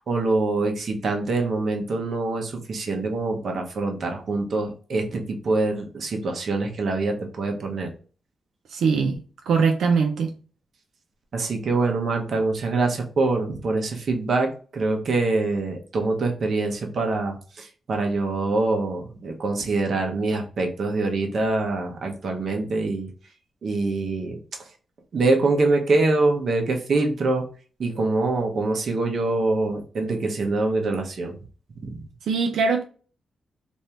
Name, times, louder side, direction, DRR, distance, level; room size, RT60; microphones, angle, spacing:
voice 1, 0.0-7.9 11.3-23.1 23.6-24.4 25.1-27.4 27.8-31.3, right 3 dB, 50° right, 0.8 m, -24 dB
voice 2, 8.7-10.3 32.2-32.8, right 5 dB, 90° right, 0.5 m, -22 dB
3.4 x 2.6 x 2.8 m
wide cardioid pair, 150°, 0 cm